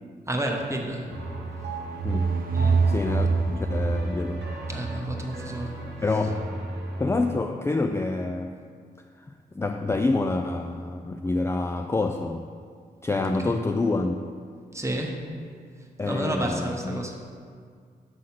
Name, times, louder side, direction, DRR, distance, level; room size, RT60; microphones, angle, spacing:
voice 1, 0.3-1.1 2.5-2.9 4.7-5.7 13.4-13.6 14.7-15.2 16.1-17.1, right 1 dB, 15° right, 1 dB, 1.0 m, -30 dB
sound 1, 1.1-7.4, right 1 dB, 80° right, 0.9 m, -36 dB
sound 2, 1.6-5.3, right 4 dB, 55° right, 0.4 m, -26 dB
voice 2, 2.0-2.4 2.9-4.5 6.0-6.6 7.0-8.6 9.3-12.5 13.0-14.3 16.0-17.0, left 3 dB, 15° left, 5 dB, 0.3 m, -27 dB
6.3 x 3.9 x 5.9 m, 2.1 s
cardioid pair, 55°, 18 cm